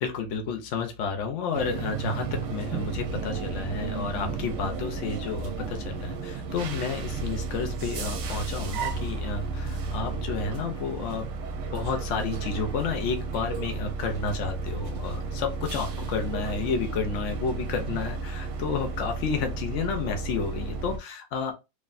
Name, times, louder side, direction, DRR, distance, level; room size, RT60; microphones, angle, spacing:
voice 1, 0.0-11.3 11.7-21.5, left 5 dB, 70° left, 5 dB, 0.7 m, -31 dB
sound 1, 1.5-21.0, right 4 dB, 70° right, 1.1 m, -33 dB
3.2 x 2.5 x 2.4 m, 0.26 s
omnidirectional pair, 2.0 m